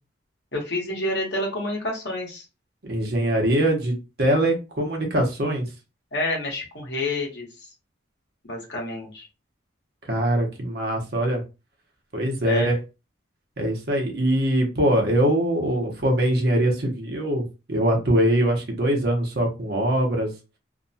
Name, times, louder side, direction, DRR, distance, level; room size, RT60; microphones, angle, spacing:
voice 1, 0.5-2.4 6.1-7.5 8.4-9.3 12.4-12.7, left 2 dB, 60° left, -1 dB, 1.1 m, -28 dB
voice 2, 2.9-5.7 10.0-11.4 12.1-12.8 13.6-20.3, right 1 dB, 55° right, 2 dB, 0.8 m, -22 dB
2.6 x 2.2 x 2.6 m, 0.29 s
head